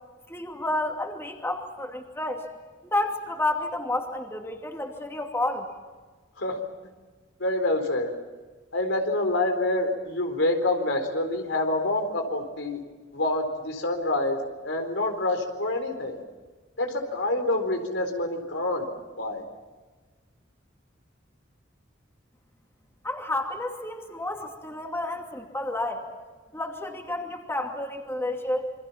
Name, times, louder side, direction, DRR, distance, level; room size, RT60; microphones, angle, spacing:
voice 1, 0.3-2.4 2.8-5.7 23.0-26.1 26.5-28.7, left 2 dB, 15° left, 2 dB, 2.6 m, -30 dB
voice 2, 7.4-8.1 8.7-12.8 13.1-16.2 16.8-18.9 19.2-19.4, left 2 dB, 80° left, 5 dB, 4.2 m, -27 dB
28.0 x 24.0 x 5.9 m, 1.3 s
head